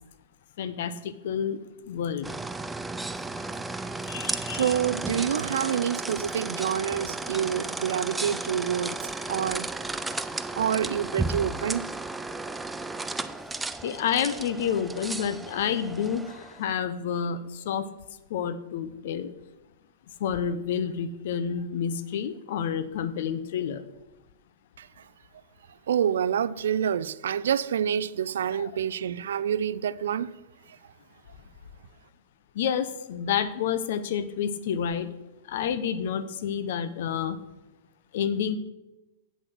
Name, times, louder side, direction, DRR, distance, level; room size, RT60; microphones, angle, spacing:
voice 1, 0.6-1.6 1.9-2.3 4.1-4.7 13.8-17.9 18.3-19.3 20.2-23.8 28.5-28.7 32.5-35.1 35.5-37.4 38.1-38.6, left 8 dB, 65° left, 0.7 m, -29 dB
sound 1, 2.2-16.6, right 2 dB, 10° right, 0.4 m, -34 dB
voice 2, 4.5-9.0 9.3-9.7 10.5-11.9 24.8-25.0 25.9-30.4 30.7-30.8, right 9 dB, 80° right, 0.4 m, -27 dB
8.1 x 6.2 x 6.0 m
hypercardioid pair, 120°, 0 cm